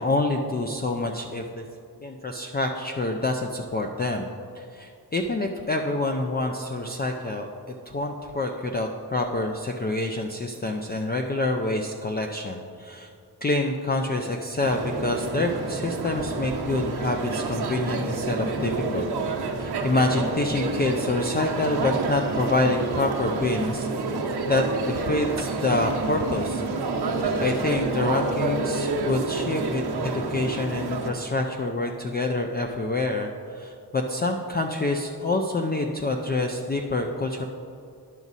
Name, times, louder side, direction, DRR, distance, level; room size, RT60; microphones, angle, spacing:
voice 1, 0.0-1.6 2.0-4.3 4.6-7.5 7.9-13.1 13.4-19.1 19.6-24.2 24.4-26.6 27.4-37.4, left 2 dB, 25° left, 2 dB, 0.3 m, -27 dB
sound 1, 14.6-31.1, right 3 dB, 85° right, 1.0 m, -29 dB
sound 2, 20.5-27.9, right 4 dB, 45° right, 0.7 m, -48 dB
10.5 x 6.0 x 4.0 m, 2.4 s
wide cardioid pair, 165°, 38 cm